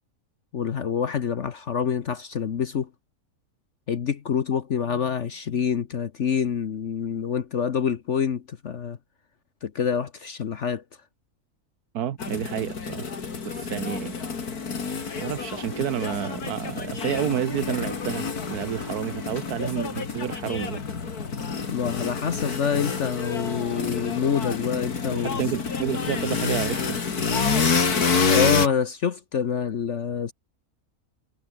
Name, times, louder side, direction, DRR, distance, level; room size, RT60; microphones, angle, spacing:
voice 1, 0.5-2.9 3.9-9.0 9.6-10.8 21.7-25.4 28.3-30.3, left 7 dB, 55° left, 1.3 m, -26 dB
voice 2, 11.9-13.2 13.4-14.2 15.2-20.8 25.2-27.0, right 10 dB, 85° right, 1.5 m, -30 dB
sound 1, 12.2-28.7, left 5 dB, 80° left, 2.8 m, -28 dB
omnidirectional pair, 1.6 m